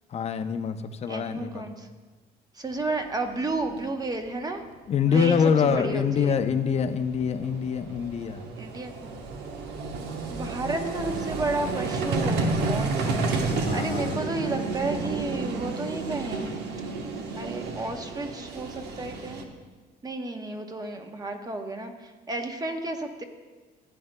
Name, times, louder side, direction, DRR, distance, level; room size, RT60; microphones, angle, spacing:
voice 1, 0.1-1.7 4.9-8.4 13.6-14.2, left 6 dB, 40° left, 9 dB, 0.6 m, -25 dB
voice 2, 1.1-1.9 2.6-4.6 5.0-6.3 8.6-9.1 10.3-16.5 17.4-19.4 20.0-21.9 22.3-23.2, right 2 dB, 20° right, 5 dB, 0.9 m, -32 dB
Vehicle, 3.3-3.4 3.6-3.8 5.8-5.9 6.1-19.4, right 3 dB, 80° right, 1.0 m, -31 dB
15.5 x 9.2 x 2.2 m, 1.3 s
cardioid pair, 110°, 17 cm